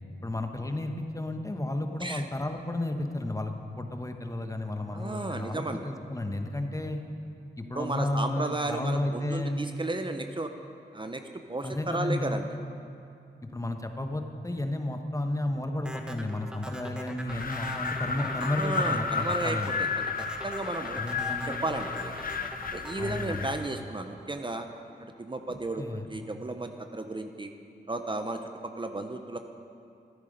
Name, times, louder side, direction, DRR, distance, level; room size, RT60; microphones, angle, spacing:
voice 1, 0.2-7.0 7.6-9.6 11.6-12.4 13.4-19.9 20.9-21.7 23.0-23.6 25.5-26.1, left 1 dB, 15° left, 5 dB, 1.1 m, -32 dB
voice 2, 4.9-5.9 7.7-10.5 10.9-12.5 18.4-19.9 20.2-21.0 21.6-22.1 22.7-24.7 25.2-27.5 27.9-29.4, right 2 dB, 25° right, 6 dB, 0.7 m, -34 dB
sound 1, 15.8-24.2, equal, 5° right, 1.3 m, -43 dB
Wind, 17.3-23.7, left 5 dB, 50° left, 0.8 m, -33 dB
13.0 x 9.8 x 5.2 m, 2.6 s
cardioid pair, 50°, 18 cm